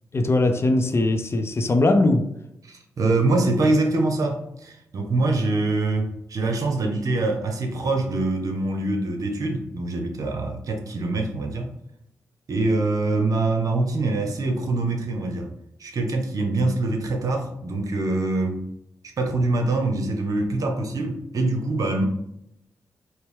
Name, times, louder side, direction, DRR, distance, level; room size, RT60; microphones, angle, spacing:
voice 1, 0.1-2.3, left 2 dB, 40° left, 0.6 m, -20 dB
voice 2, 2.6-11.7 12.5-15.5 15.8-18.7 19.2-22.0, right 2 dB, 60° right, 0.9 m, -24 dB
4.5 x 2.1 x 3.5 m
supercardioid pair, 45°, 6 cm